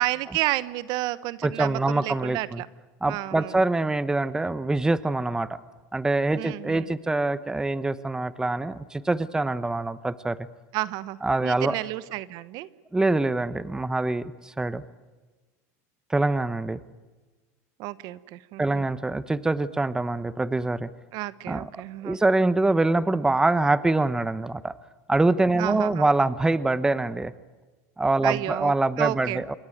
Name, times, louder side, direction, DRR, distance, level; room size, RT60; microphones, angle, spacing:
voice 1, 0.0-2.7 3.1-3.5 6.3-6.9 10.7-12.7 17.8-18.8 21.1-22.2 25.6-26.0 28.2-29.4, right 17 dB, 55° right, 17 dB, 1.1 m, -31 dB
voice 2, 1.4-2.6 3.0-5.6 5.9-10.4 11.2-11.8 12.9-14.8 16.1-16.8 18.6-20.9 21.5-24.7 25.1-27.3 28.0-29.5, right 2 dB, 10° right, 15 dB, 1.0 m, -24 dB
27.0 x 23.0 x 9.3 m, 1.3 s
supercardioid pair, 120°, 9 cm